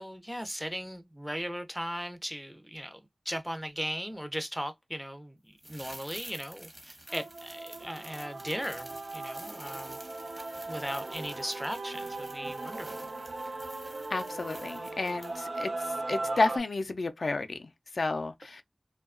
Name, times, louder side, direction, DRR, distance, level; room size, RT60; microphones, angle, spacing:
voice 1, 0.0-3.0 3.3-10.0 10.7-13.0, equal, 5° right, 0.5 m, -38 dB
sound 1, 5.6-15.6 15.8-15.9, right 1 dB, 30° right, 0.9 m, -49 dB
Male singing / Female singing / Musical instrument, 7.1-16.6, right 2 dB, 80° right, 0.4 m, -38 dB
voice 2, 14.1-18.6, left 3 dB, 90° left, 0.3 m, -31 dB
2.7 x 2.2 x 2.4 m
wide cardioid pair, 70°, 0 cm